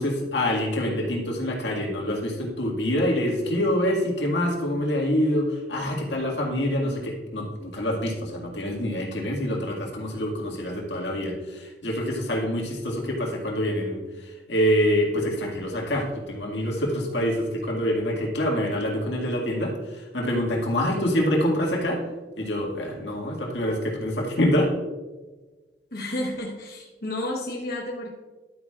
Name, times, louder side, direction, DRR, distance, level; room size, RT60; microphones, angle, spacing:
voice 1, 0.0-22.0 22.4-24.7, equal, 85° left, -1 dB, 1.9 m, -26 dB
voice 2, 25.9-28.1, left 1 dB, 55° left, -2 dB, 1.1 m, -31 dB
11.5 x 9.0 x 2.4 m, 1.3 s
head